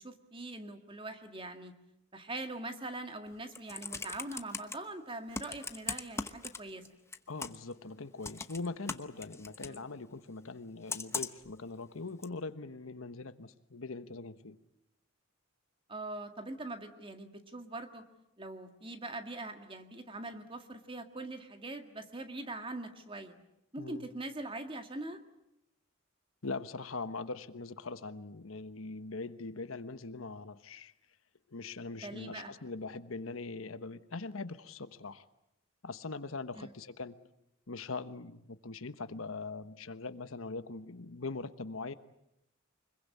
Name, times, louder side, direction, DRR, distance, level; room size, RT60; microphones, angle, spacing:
voice 1, 0.0-1.7 2.1-6.9 9.7-9.9 15.9-18.1 18.4-23.4 23.7-25.2 32.0-32.5 36.5-36.7, right 2 dB, 25° right, 7 dB, 1.9 m, -42 dB
Computer keyboard, 3.3-4.7 5.3-6.9 7.1-7.7 8.2-9.8 10.9-11.5 12.2-12.3, left 4 dB, 15° left, 0.9 m, -39 dB
voice 2, 7.3-14.6 23.8-24.1 26.4-30.9 31.5-35.3 35.8-37.2 37.7-41.9, left 3 dB, 80° left, 12 dB, 1.2 m, -41 dB
25.5 x 22.0 x 8.5 m, 0.82 s
head